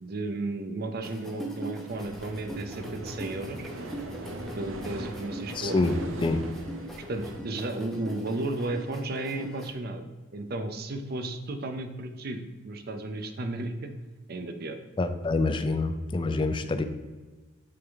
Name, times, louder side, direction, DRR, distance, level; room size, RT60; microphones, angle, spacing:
voice 1, 0.0-3.7 4.6-6.0 7.1-10.1 10.3-13.9 14.3-14.8, right 2 dB, 50° right, 7 dB, 0.6 m, -34 dB
sound 1, 1.0-9.7, right 1 dB, ahead, 0.8 m, -42 dB
sound 2, 1.9-7.4, right 1 dB, 85° right, 0.7 m, -40 dB
voice 2, 5.5-6.0 6.2-6.4 15.0-16.8, left 3 dB, 25° left, 8 dB, 0.3 m, -26 dB
8.3 x 3.5 x 3.5 m, 1.3 s
head